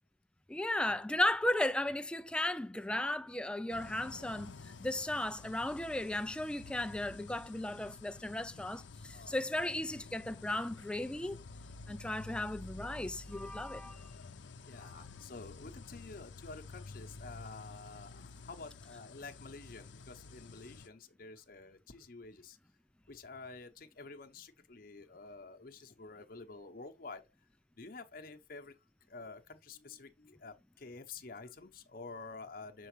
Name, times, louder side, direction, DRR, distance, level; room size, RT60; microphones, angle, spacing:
voice 1, 0.5-11.4 11.9-14.0 14.8-14.9, left 1 dB, 5° left, 0.3 m, -35 dB
sound 1, 3.7-20.9, left 3 dB, 85° left, 0.6 m, -50 dB
voice 2, 14.6-22.6 23.1-27.3 27.8-28.8 29.1-32.9, left 3 dB, 50° left, 0.8 m, -49 dB
6.9 x 4.6 x 3.1 m
head